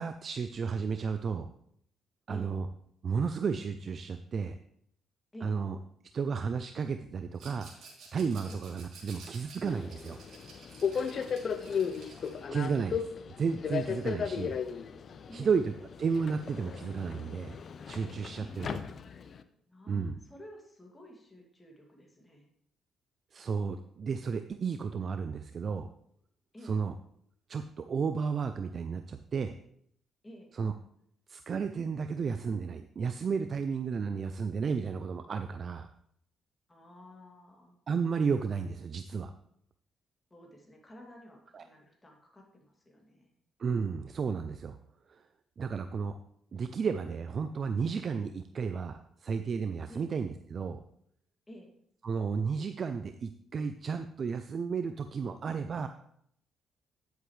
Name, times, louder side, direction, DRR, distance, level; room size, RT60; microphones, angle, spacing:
voice 1, 0.0-1.5 2.3-2.7 3.0-4.6 5.4-5.8 6.1-7.7 8.1-10.2 12.5-13.1 13.4-14.5 15.3-15.7 16.0-17.6 17.9-18.7 19.9-20.2 23.3-25.9 26.6-26.9 27.5-29.6 30.5-30.7 31.3-35.9 37.9-39.3 41.5-41.6 43.6-44.8 45.1-45.2 45.6-46.2 46.5-50.8 52.0-55.9, right 5 dB, 50° right, 9 dB, 0.4 m, -33 dB
Rattle, 7.3-12.4, right 4 dB, 70° right, 3.2 m, -52 dB
Subway metro underground, 9.7-19.4, left 7 dB, 55° left, 0.6 m, -36 dB
voice 2, 10.9-12.3 15.3-15.5 18.3-18.7 19.7-22.5 26.5-26.8 30.2-30.5 36.7-37.8 40.3-43.3 49.9-50.1 51.5-51.7, equal, 20° left, 0 dB, 2.4 m, -51 dB
9.9 x 8.1 x 3.2 m, 0.71 s
cardioid pair, 90°, 0 cm